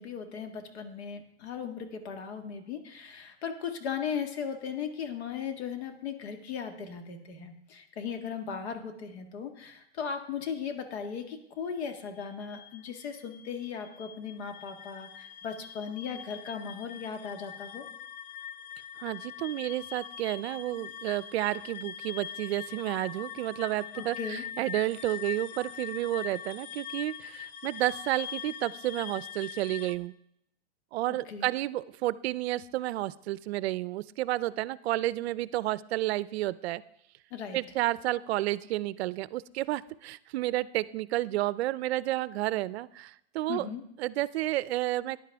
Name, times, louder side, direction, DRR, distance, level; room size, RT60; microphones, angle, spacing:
voice 1, 0.0-17.8 24.0-24.4 31.3-31.5 37.3-37.6 43.5-43.8, left 7 dB, 80° left, 6 dB, 1.8 m, -37 dB
sound 1, 12.1-30.0, left 9 dB, 55° left, 0.7 m, -43 dB
voice 2, 19.0-30.1 30.9-36.8 37.5-43.7 44.0-45.2, right 16 dB, 70° right, 18 dB, 0.5 m, -31 dB
14.0 x 10.0 x 3.5 m, 0.77 s
supercardioid pair, 155°, 32 cm